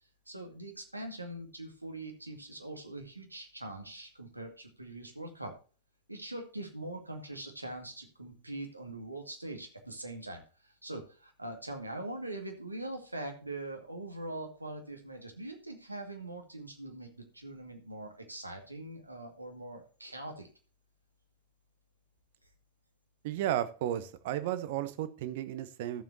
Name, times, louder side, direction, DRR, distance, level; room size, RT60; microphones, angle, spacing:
voice 1, 0.3-5.5 6.1-17.1 17.3-20.5, right 1 dB, 85° right, 3 dB, 2.0 m, -42 dB
voice 2, 23.2-26.0, right 12 dB, 50° right, 13 dB, 1.0 m, -33 dB
13.5 x 7.3 x 2.8 m, 0.37 s
figure-of-eight pair, 90°, 0 cm